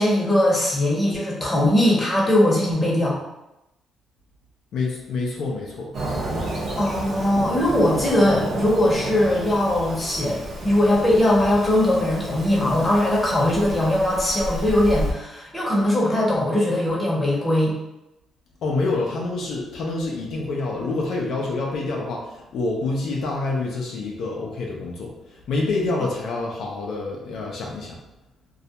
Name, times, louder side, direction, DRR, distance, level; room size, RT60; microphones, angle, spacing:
voice 1, 0.0-3.2 6.8-17.8, left 1 dB, 15° left, -4 dB, 0.8 m, -20 dB
voice 2, 4.7-5.9 18.6-28.0, left 3 dB, 70° left, -2 dB, 0.5 m, -27 dB
Fireworks, 5.9-15.1, right 1 dB, 50° right, 0.7 m, -31 dB
2.3 x 2.1 x 2.8 m, 0.91 s
cardioid pair, 90°, 0 cm